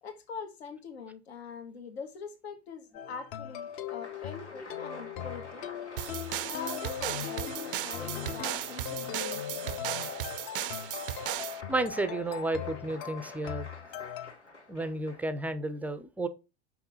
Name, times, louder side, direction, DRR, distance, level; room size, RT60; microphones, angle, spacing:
voice 1, 0.0-5.6 6.5-9.4, left 6 dB, 65° left, 1.5 m, -43 dB
sound 1, 2.9-14.3, left 9 dB, 40° left, 0.9 m, -40 dB
Applause, 3.6-15.5, left 2 dB, 90° left, 2.5 m, -47 dB
sound 2, 6.0-11.6, right 14 dB, 55° right, 0.5 m, -36 dB
voice 2, 11.7-13.7 14.7-16.3, right 2 dB, 5° right, 0.5 m, -32 dB
5.9 x 5.7 x 4.1 m
figure-of-eight pair, 90°, 34 cm